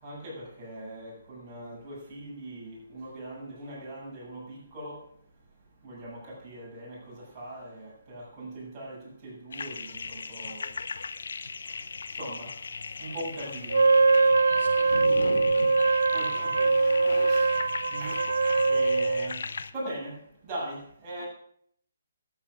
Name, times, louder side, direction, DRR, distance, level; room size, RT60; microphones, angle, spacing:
voice 1, 0.0-5.0 5.8-10.7 12.2-12.5 13.0-13.8 14.8-15.0 16.1-17.5 17.9-19.4 19.7-20.2 20.5-21.3, right 1 dB, 20° right, -7 dB, 7.3 m, -40 dB
sound 1, 9.5-19.7, left 5 dB, 70° left, 0.8 m, -38 dB
Wind instrument woodwind instrument, 13.7-19.3, right 3 dB, 85° right, 0.4 m, -23 dB
voice 2, 14.5-15.9 17.9-18.2 21.2-21.3, left 2 dB, 90° left, 4 dB, 3.2 m, -38 dB
12.5 x 9.1 x 6.3 m, 0.66 s
hypercardioid pair, 160°, 0 cm